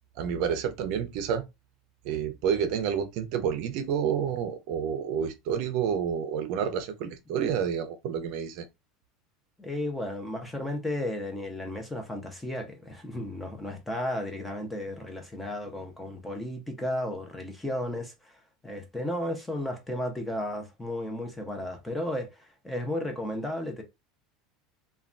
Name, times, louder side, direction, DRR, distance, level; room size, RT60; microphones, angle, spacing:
voice 1, 0.2-1.4 2.1-8.6, right 8 dB, 55° right, 0.5 m, -29 dB
voice 2, 9.6-23.8, left 1 dB, 5° left, 0.5 m, -34 dB
3.1 x 2.2 x 2.5 m
supercardioid pair, 155°, 0 cm